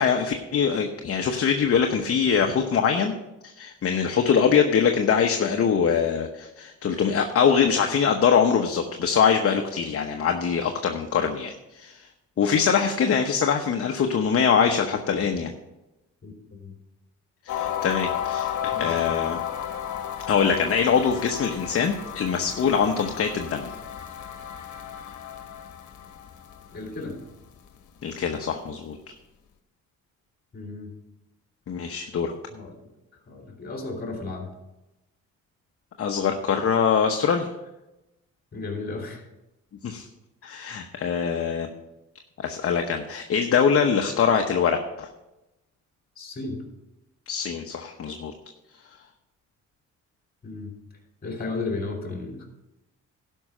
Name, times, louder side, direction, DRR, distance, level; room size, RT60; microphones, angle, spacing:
voice 1, 0.0-3.1 3.4-12.1 12.4-15.5 17.5-19.4 20.3-23.7 28.0-29.0 31.7-32.3 36.0-37.5 39.8-40.1 40.4-41.7 42.4-45.1 47.3-48.3, left 6 dB, 50° left, 4 dB, 1.0 m, -23 dB
voice 2, 16.2-16.7 18.7-18.9 26.7-27.2 30.5-30.9 32.2-32.8 33.3-34.5 38.5-39.2 46.2-46.6 50.4-50.7 51.2-52.5, left 3 dB, 30° left, 2 dB, 3.1 m, -34 dB
sound 1, 17.5-27.4, left 10 dB, 75° left, 1.2 m, -33 dB
12.0 x 5.6 x 6.2 m, 0.97 s
cardioid pair, 90°, 30 cm